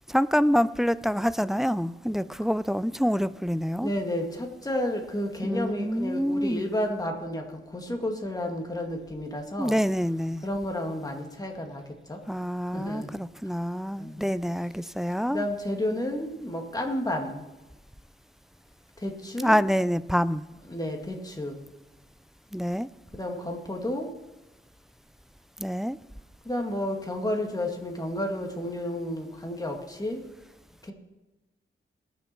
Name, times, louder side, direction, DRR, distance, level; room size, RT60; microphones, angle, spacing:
voice 1, 0.1-3.9 5.4-6.7 9.6-10.4 12.3-15.4 19.4-20.4 22.5-22.9 25.6-26.0, equal, ahead, 0.4 m, -26 dB
voice 2, 3.8-9.8 10.4-12.2 12.7-13.2 14.0-14.2 15.3-17.5 19.0-19.6 20.7-21.6 23.1-24.1 26.4-30.2 30.8-30.9, left 1 dB, 20° left, 2.2 m, -31 dB
21.0 x 7.2 x 4.5 m
wide cardioid pair, 90°, 21 cm